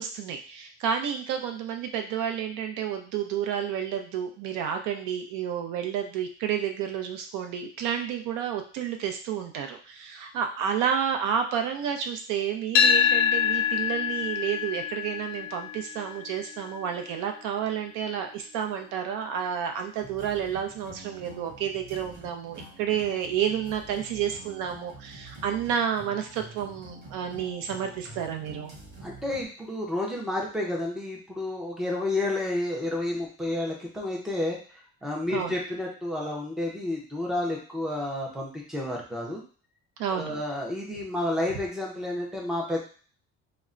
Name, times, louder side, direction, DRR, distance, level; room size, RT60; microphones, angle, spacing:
voice 1, 0.0-28.7 35.3-35.5 40.0-40.4, right 8 dB, 75° right, 5 dB, 0.6 m, -30 dB
sound 1, 12.8-20.9, left 7 dB, 90° left, 0.5 m, -28 dB
sound 2, 20.0-29.5, right 1 dB, 35° right, 0.9 m, -47 dB
voice 2, 29.0-34.6 35.0-39.4 40.1-42.8, left 1 dB, ahead, -2 dB, 0.4 m, -30 dB
2.2 x 2.1 x 3.6 m, 0.42 s
cardioid pair, 175°, 32 cm